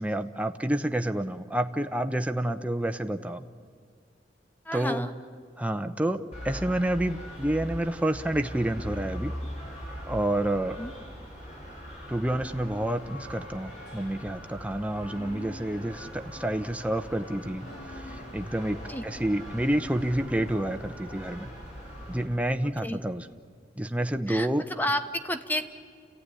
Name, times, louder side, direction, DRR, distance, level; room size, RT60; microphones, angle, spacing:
voice 1, 0.0-3.4 4.7-5.1 5.6-9.3 10.1-10.8 12.1-21.5 22.1-23.3 23.8-24.6, right 1 dB, 10° right, 6 dB, 0.7 m, -29 dB
voice 2, 4.6-5.1 10.8-10.9 18.9-19.0 22.8-23.0 24.3-25.7, left 1 dB, 10° left, 8 dB, 1.1 m, -31 dB
sound 1, 6.3-22.3, equal, 45° left, 7.1 m, -41 dB
sound 2, 10.5-23.5, left 1 dB, 85° left, 4.8 m, -52 dB
29.5 x 15.5 x 9.9 m, 2.1 s
head